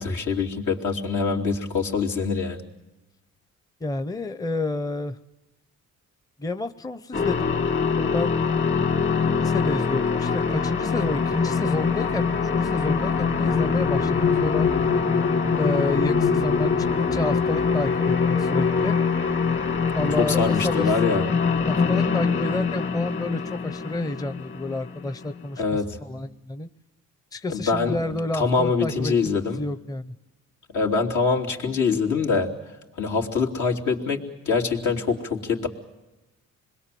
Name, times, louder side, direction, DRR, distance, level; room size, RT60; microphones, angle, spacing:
voice 1, 0.0-2.6 20.2-21.2 25.6-26.0 27.5-29.6 30.7-32.5 33.0-35.7, left 4 dB, 75° left, 0 dB, 3.2 m, -24 dB
voice 2, 3.8-5.2 6.4-7.5 8.0-8.3 9.4-14.7 15.6-19.0 19.9-20.9 21.7-26.7 27.3-30.1, left 2 dB, 10° left, 11 dB, 0.8 m, -30 dB
sound 1, 7.1-25.4, left 5 dB, 40° left, 2.3 m, -24 dB
sound 2, 10.7-19.7 20.6-20.7 21.1-21.6, left 6 dB, 55° left, 1.2 m, -30 dB
26.5 x 21.5 x 7.7 m, 1.1 s
cardioid pair, 90°, 30 cm